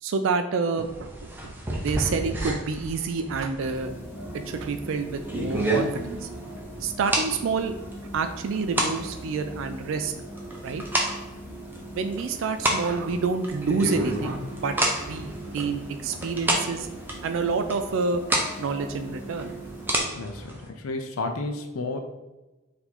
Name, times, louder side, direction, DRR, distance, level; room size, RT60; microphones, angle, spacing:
voice 1, 0.0-3.9 4.3-7.7 8.1-10.1 10.6-10.8 11.9-16.9 17.2-18.2 18.6-19.5, right 4 dB, 65° right, 8 dB, 0.3 m, -28 dB
sound 1, 0.8-20.7, right 1 dB, 10° right, 0.5 m, -31 dB
sound 2, 3.6-20.0, right 1 dB, 10° left, 1.0 m, -42 dB
voice 2, 20.1-22.0, left 3 dB, 80° left, 5 dB, 0.5 m, -32 dB
4.5 x 2.7 x 4.1 m, 1.1 s
head